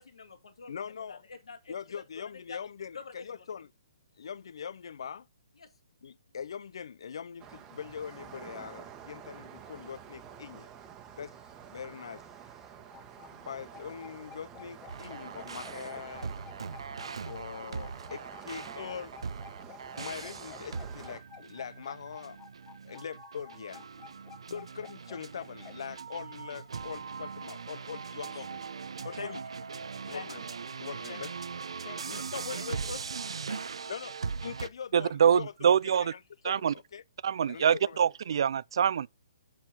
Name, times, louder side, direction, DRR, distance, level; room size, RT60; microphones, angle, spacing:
voice 1, 0.0-2.6 2.9-3.5 5.6-5.7 28.1-28.4 29.1-29.4 30.1-30.4 31.1-31.3 31.8-32.1 32.5-33.0 33.4-33.6 36.0-36.1, left 4 dB, 85° left, 2.2 m, -46 dB
voice 2, 0.7-1.2 1.7-3.7 4.2-5.3 6.0-10.7 11.1-11.4 11.7-12.3 13.3-16.3 17.3-19.2 20.0-22.4 22.8-23.9 24.5-28.6 29.0-29.4 30.0-30.4 30.8-31.3 32.1-32.8 33.9-34.2 34.4-37.0 37.5-38.0, left 7 dB, 65° left, 0.6 m, -42 dB
sound 1, 7.4-21.2, right 8 dB, 15° right, 1.2 m, -49 dB
sound 2, 12.9-25.9, left 8 dB, 20° left, 1.0 m, -52 dB
sound 3, 14.9-34.7, right 5 dB, 85° right, 0.8 m, -40 dB
voice 3, 34.9-36.1 36.4-36.7 37.2-39.1, right 8 dB, 60° right, 0.4 m, -25 dB
7.3 x 5.8 x 6.1 m
hypercardioid pair, 160°, 3 cm